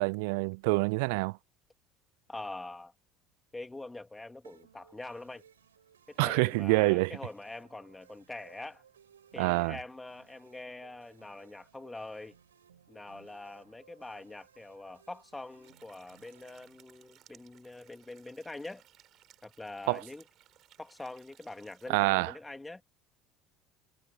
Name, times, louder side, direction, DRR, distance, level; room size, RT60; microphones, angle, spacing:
voice 1, 0.0-1.4 6.2-7.2 9.4-9.8 19.9-20.0 21.9-22.3, right 29 dB, 70° right, 0.3 m, -27 dB
voice 2, 2.3-2.9 3.5-5.4 6.1-8.8 9.3-12.4 12.9-18.8 19.4-20.2 20.8-22.8, left 2 dB, 10° left, 2.9 m, -44 dB
sound 1, 4.4-17.5, right 8 dB, 90° right, 4.6 m, -63 dB
sound 2, 15.6-21.9, right 12 dB, 50° right, 4.3 m, -62 dB
hypercardioid pair, 70°, 0 cm